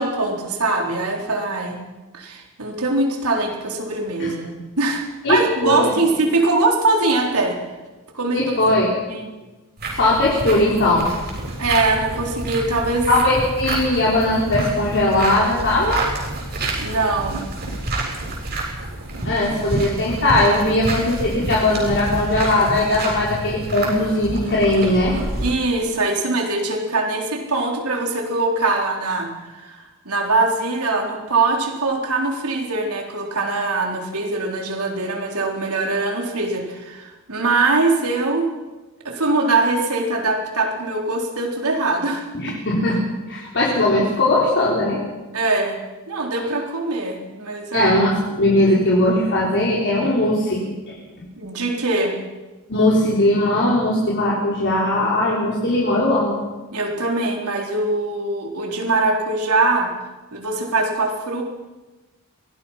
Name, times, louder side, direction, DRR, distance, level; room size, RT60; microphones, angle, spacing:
voice 1, 0.0-1.8 2.1-7.6 8.1-8.5 9.1-9.3 11.6-13.1 16.7-17.4 25.4-38.5 39.0-42.3 45.3-45.8 46.1-47.9 51.4-52.1 56.7-59.9 60.3-61.4, right 3 dB, 80° right, 1 dB, 4.1 m, -22 dB
voice 2, 5.2-5.9 8.3-8.9 10.0-11.1 13.1-16.0 19.2-25.1 42.3-43.0 43.3-45.0 47.7-50.6 52.7-56.3, left 1 dB, 55° left, -5 dB, 4.2 m, -19 dB
sound 1, 9.8-25.5, right 2 dB, 45° right, 7.8 m, -28 dB
24.0 x 19.0 x 5.8 m, 1.1 s
head